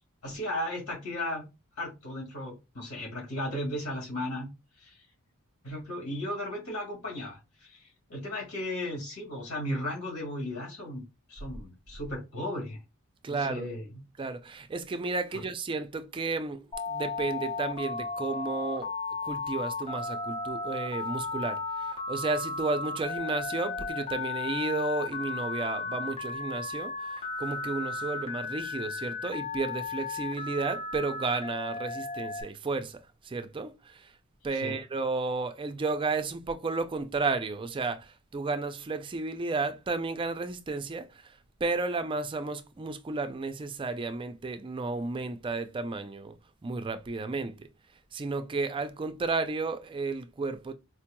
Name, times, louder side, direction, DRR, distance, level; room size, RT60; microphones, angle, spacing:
voice 1, 0.2-1.4 1.8-4.5 4.8-5.0 5.6-11.0 11.3-12.8 13.3-13.8 15.3-15.4 34.5-34.8, left 1 dB, 80° left, 2.0 m, -35 dB
voice 2, 13.2-13.7 14.2-18.9 19.2-34.1 34.4-46.3 46.6-47.7 48.1-50.7, right 3 dB, 25° right, 0.3 m, -33 dB
Telephone, 16.7-32.4, left 4 dB, 25° left, 0.8 m, -35 dB
4.3 x 2.9 x 2.2 m
head